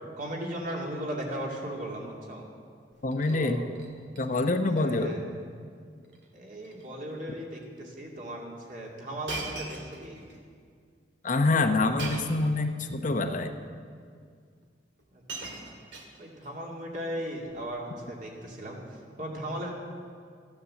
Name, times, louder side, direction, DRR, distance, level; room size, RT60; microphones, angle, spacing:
voice 1, 0.2-2.5 3.3-3.7 4.7-5.2 6.3-10.2 15.1-15.2 15.6-15.7 16.2-19.7, right 1 dB, 50° right, -2 dB, 2.5 m, -37 dB
Shatter, 2.9-3.4 3.7-4.2 4.5-4.8 5.1-5.2 6.0-6.3 6.6-6.9 7.6-7.7 9.3-10.4 12.0-12.5 13.5-13.6 14.6-14.7 15.0-16.5 17.4-17.7, right 3 dB, 85° right, 2.0 m, -40 dB
voice 2, 3.0-3.6 4.2-5.1 11.2-13.5, left 2 dB, 45° left, 6 dB, 0.8 m, -26 dB
14.0 x 9.7 x 7.7 m, 2.1 s
head